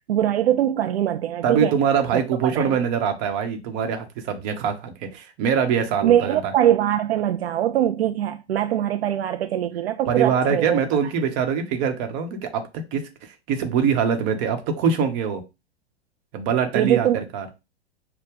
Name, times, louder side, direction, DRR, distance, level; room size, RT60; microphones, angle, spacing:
voice 1, 0.1-1.7 2.1-2.2 2.6-2.8 6.0-10.8 16.7-17.2, right 11 dB, 70° right, 0.5 m, -22 dB
voice 2, 1.4-6.5 10.1-15.4 16.3-17.5, right 7 dB, 40° right, 1.0 m, -23 dB
6.5 x 2.3 x 3.5 m
figure-of-eight pair, 100°, 33 cm